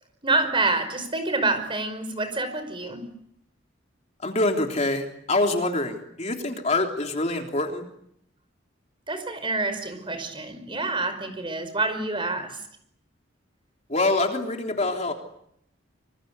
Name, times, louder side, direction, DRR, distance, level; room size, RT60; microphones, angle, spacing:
voice 1, 0.2-3.0 9.1-12.6, right 2 dB, 25° right, 9 dB, 5.3 m, -27 dB
voice 2, 4.2-7.8 13.9-15.1, left 2 dB, 35° left, 3 dB, 3.4 m, -25 dB
26.5 x 26.0 x 8.2 m, 0.72 s
head